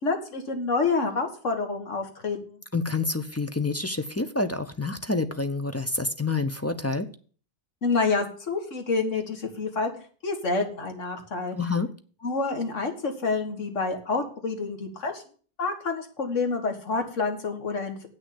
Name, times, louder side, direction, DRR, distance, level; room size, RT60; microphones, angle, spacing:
voice 1, 0.0-2.6 7.8-9.9 10.2-11.6 12.2-15.2 15.6-18.1, left 4 dB, 80° left, 6 dB, 2.0 m, -28 dB
voice 2, 2.7-7.1 11.6-11.9, left 3 dB, 25° left, 9 dB, 0.3 m, -28 dB
8.2 x 6.4 x 8.2 m, 0.43 s
omnidirectional pair, 1.3 m